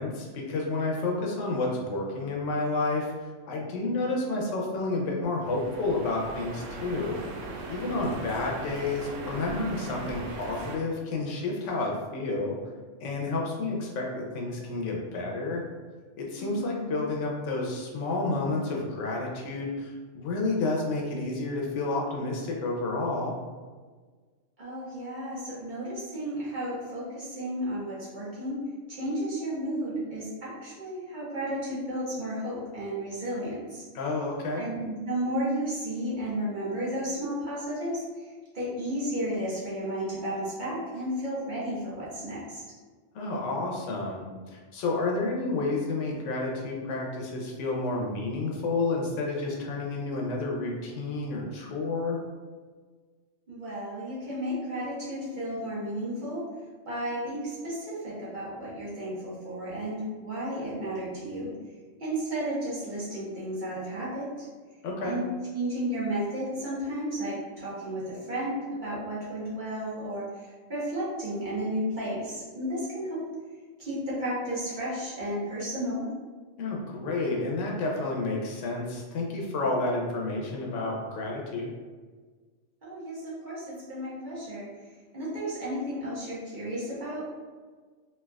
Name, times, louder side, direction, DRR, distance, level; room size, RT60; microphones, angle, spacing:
voice 1, 0.0-7.2 7.7-12.6 13.0-15.6 16.2-23.4 33.9-34.6 43.1-52.2 64.8-65.2 76.6-81.7, left 2 dB, 75° left, -1 dB, 0.9 m, -30 dB
sound 1, 5.5-10.8, right 2 dB, 80° right, 0.9 m, -39 dB
voice 2, 16.4-17.0 24.6-28.6 28.9-33.8 34.6-42.8 53.5-56.5 56.8-61.5 62.0-64.5 65.0-65.2 65.5-73.2 73.8-76.1 82.8-84.7 85.1-87.3, right 1 dB, 40° right, -8 dB, 1.0 m, -33 dB
3.3 x 2.7 x 2.3 m, 1.4 s
omnidirectional pair, 1.3 m